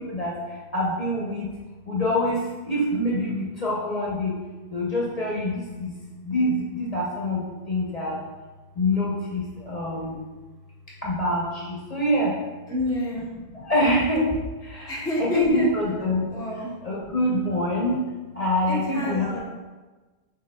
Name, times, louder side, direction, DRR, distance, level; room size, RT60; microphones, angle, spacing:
voice 1, 0.7-1.5 1.9-2.4 2.6-4.3 4.7-5.9 6.3-7.4 7.7-8.1 8.8-10.1 11.0-11.4 11.9-12.3 13.7-14.2 15.2-16.2 16.8-18.0 18.4-19.4, left 1 dB, 40° left, -5 dB, 0.9 m, -25 dB
voice 2, 12.7-13.3 14.9-15.7 16.3-16.8 18.7-19.4, equal, 5° left, -5 dB, 0.7 m, -29 dB
5.9 x 3.5 x 2.2 m, 1.2 s
omnidirectional pair, 1.1 m